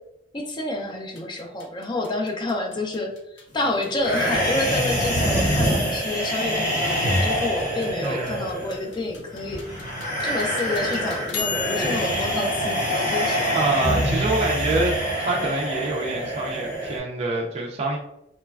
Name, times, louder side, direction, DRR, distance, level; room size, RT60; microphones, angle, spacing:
voice 1, 0.3-3.1 3.5-9.6 10.2-13.5, left 2 dB, 25° left, 2 dB, 0.4 m, -28 dB
sound 1, 1.0-13.8, left 6 dB, 80° left, 0.5 m, -39 dB
sound 2, 4.0-17.0, equal, 45° left, 1.0 m, -25 dB
voice 2, 8.0-8.4 13.5-18.0, right 2 dB, 35° right, -1 dB, 0.4 m, -26 dB
3.0 x 2.2 x 2.3 m, 0.82 s
head